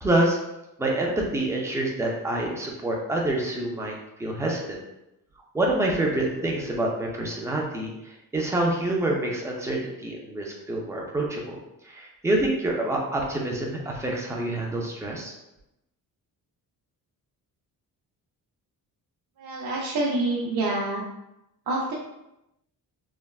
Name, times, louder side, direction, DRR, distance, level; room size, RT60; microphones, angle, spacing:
voice 1, 0.0-0.4 0.8-3.9 4.2-4.8 5.5-11.6 11.8-15.3, right 1 dB, 10° right, -2 dB, 0.3 m, -27 dB
voice 2, 19.4-21.1 21.7-21.9, right 2 dB, 80° right, -5 dB, 0.6 m, -27 dB
3.3 x 2.1 x 2.3 m, 0.89 s
wide cardioid pair, 165°, 35 cm